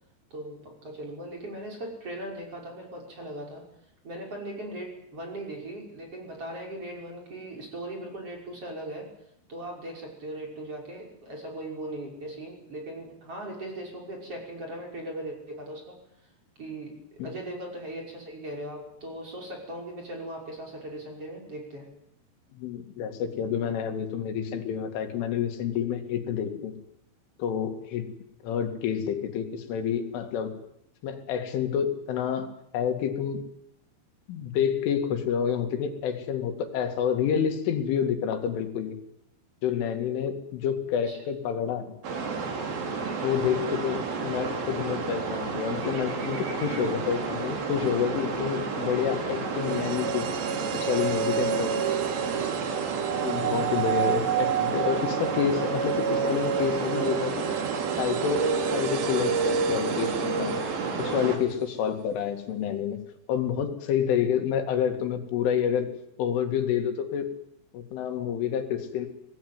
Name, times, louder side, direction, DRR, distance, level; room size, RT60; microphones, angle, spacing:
voice 1, 0.3-3.7 4.0-9.1 9.5-16.3 16.6-21.9 41.0-41.2 43.4-43.6 53.4-53.7, right 1 dB, 30° right, 1 dB, 6.3 m, -39 dB
voice 2, 22.5-26.7 27.4-28.1 28.4-30.6 31.0-33.4 34.3-39.0 39.6-41.9 43.2-50.3 50.7-51.9 53.2-57.5 58.0-60.6 61.0-63.0 63.3-65.9 66.2-67.4 67.7-69.1, left 8 dB, 85° left, 6 dB, 4.7 m, -28 dB
sound 1, 42.0-61.4, right 4 dB, 50° right, 4.6 m, -31 dB
sound 2, 49.5-61.6 61.9-62.0, right 8 dB, 85° right, 1.8 m, -30 dB
24.5 x 19.0 x 9.5 m, 0.76 s
omnidirectional pair, 5.5 m